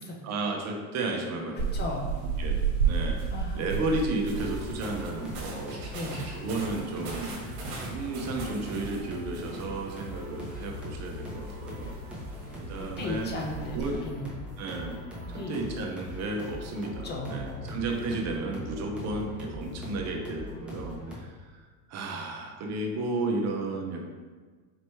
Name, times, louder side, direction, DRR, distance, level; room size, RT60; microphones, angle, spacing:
voice 1, 0.2-1.8 2.4-2.6 2.8-3.2 3.5-5.9 6.3-7.4 7.9-12.0 12.6-13.3 13.7-14.0 14.6-15.0 15.3-21.6 21.9-24.1, right 2 dB, 40° right, 1 dB, 0.8 m, -33 dB
voice 2, 1.6-2.2 3.3-3.6 5.9-6.3 12.8-14.3 15.3-15.6 16.8-17.8, left 2 dB, 25° left, 0 dB, 0.7 m, -36 dB
sound 1, 1.6-14.0, right 5 dB, 65° right, 1.3 m, -34 dB
sound 2, 4.3-21.2, left 1 dB, 5° right, 0.9 m, -40 dB
4.5 x 3.1 x 3.0 m, 1.4 s
supercardioid pair, 115°, 42 cm